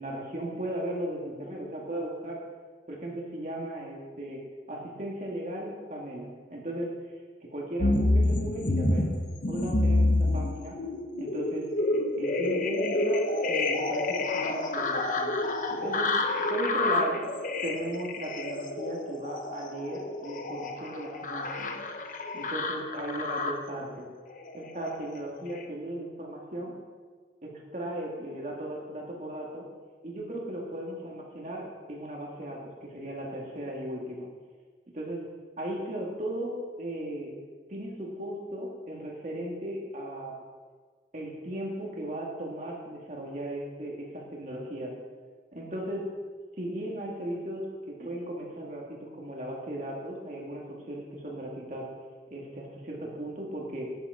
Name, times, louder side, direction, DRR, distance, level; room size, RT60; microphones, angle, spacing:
voice 1, 0.0-2.4 2.9-4.4 4.7-7.0 7.5-9.1 9.5-10.8 11.2-11.7 12.1-15.4 15.7-16.2 16.5-17.2 17.6-21.8 22.3-24.1 24.5-26.7 27.4-29.6 30.0-34.3 34.9-35.3 35.6-37.3 37.7-40.4 41.1-44.9 45.5-46.1 46.6-51.9 52.3-53.9, right 1 dB, 45° right, -2 dB, 2.0 m, -36 dB
sound 1, 7.8-23.7 24.4-25.0 25.5-25.6, left 2 dB, 50° left, 0.9 m, -28 dB
11.0 x 9.6 x 4.9 m, 1.5 s
head